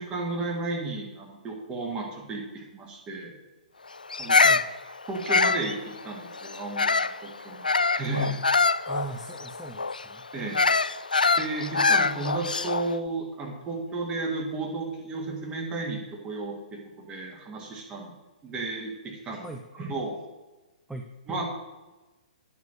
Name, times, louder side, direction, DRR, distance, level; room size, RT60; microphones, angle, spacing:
voice 1, 0.0-3.3 4.2-4.4 5.1-5.8 6.0-7.7 7.9-8.4 10.3-10.6 11.4-18.1 18.4-19.5 19.8-20.2 21.3-21.5, right 3 dB, 20° right, 0 dB, 2.1 m, -33 dB
Bird vocalization bird call bird song, 4.1-7.2 7.6-12.9, left 4 dB, 80° left, 0.3 m, -24 dB
voice 2, 8.9-10.3 19.4-19.6 20.9-21.1, right 3 dB, 5° right, 2 dB, 0.6 m, -39 dB
9.5 x 6.0 x 6.1 m, 1.1 s
figure-of-eight pair, 120°, 5 cm